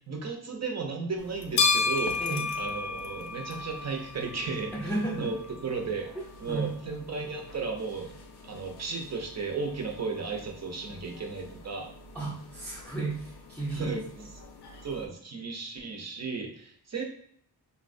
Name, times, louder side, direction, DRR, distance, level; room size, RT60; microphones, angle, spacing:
voice 1, 0.1-2.2 2.6-4.7 5.1-6.1 6.4-8.1 8.4-11.9 13.7-14.0 14.3-14.4 14.8-17.0, right 4 dB, 40° right, 2 dB, 0.5 m, -34 dB
sound 1, 1.2-15.0, left 4 dB, 75° left, 0.5 m, -35 dB
voice 2, 4.7-5.3 6.5-6.7 12.1-14.0, right 2 dB, 5° left, -6 dB, 0.5 m, -33 dB
3.9 x 2.1 x 2.5 m, 0.64 s
wide cardioid pair, 165°, 40 cm